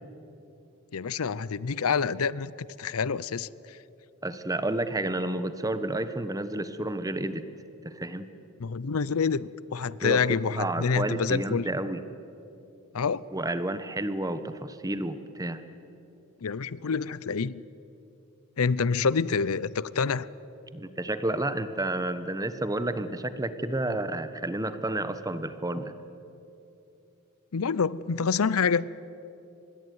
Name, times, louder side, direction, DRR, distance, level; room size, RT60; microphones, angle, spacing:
voice 1, 0.9-2.5 2.8-3.5 8.6-11.6 12.9-13.2 16.4-17.6 18.6-20.3 27.5-28.9, left 5 dB, 80° left, 20 dB, 0.6 m, -27 dB
voice 2, 4.2-7.4 7.8-8.2 10.0-10.2 10.6-12.0 13.3-15.6 20.7-25.9, right 1 dB, 15° right, 11 dB, 1.1 m, -30 dB
25.5 x 20.5 x 9.4 m, 2.9 s
head